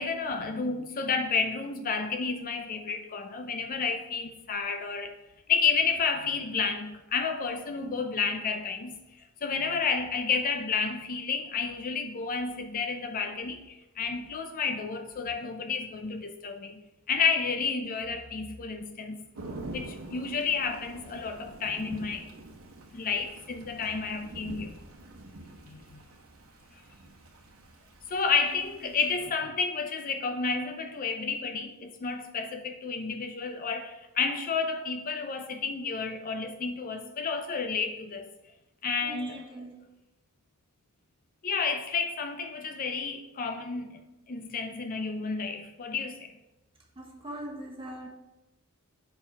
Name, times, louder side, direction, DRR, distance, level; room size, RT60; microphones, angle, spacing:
voice 1, 0.0-5.1 5.5-9.0 9.4-16.8 17.1-19.2 19.7-22.3 22.9-24.7 25.7-26.0 28.1-38.3 38.8-39.4 41.4-44.0 44.3-46.3, left 5 dB, 40° left, 0.5 m, -31 dB
Thunder / Rain, 19.3-29.3, right 2 dB, 65° right, 1.0 m, -46 dB
voice 2, 28.5-29.3 37.0-37.1 39.0-39.8 45.2-45.3 46.9-48.1, right 1 dB, 25° right, 1.3 m, -43 dB
5.3 x 4.8 x 5.5 m
head